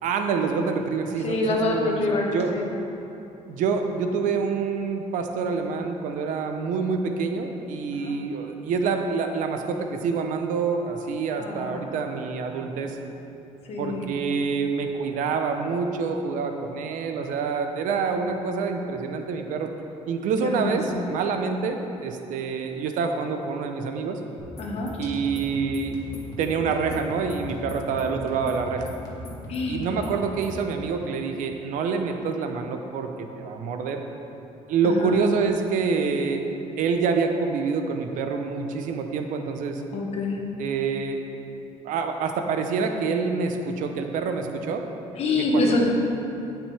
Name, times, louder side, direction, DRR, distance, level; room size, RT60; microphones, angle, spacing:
voice 1, 0.0-2.0 2.3-2.5 3.5-13.0 13.8-19.7 20.1-24.2 25.0-25.9 26.4-28.9 29.7-34.0 34.7-36.4 36.8-39.8 40.6-41.2 41.8-44.8 45.5-45.8, right 5 dB, 85° right, 5 dB, 0.9 m, -27 dB
voice 2, 1.2-2.7 7.9-8.2 11.4-12.3 13.7-14.2 20.4-21.1 24.6-25.0 29.5-29.9 34.8-35.2 39.9-40.4 45.2-45.8, left 2 dB, 55° left, 0 dB, 1.5 m, -26 dB
sound 1, 24.4-30.6, left 1 dB, 30° left, 1.8 m, -39 dB
17.0 x 6.0 x 3.5 m, 2.9 s
cardioid pair, 140°, 13 cm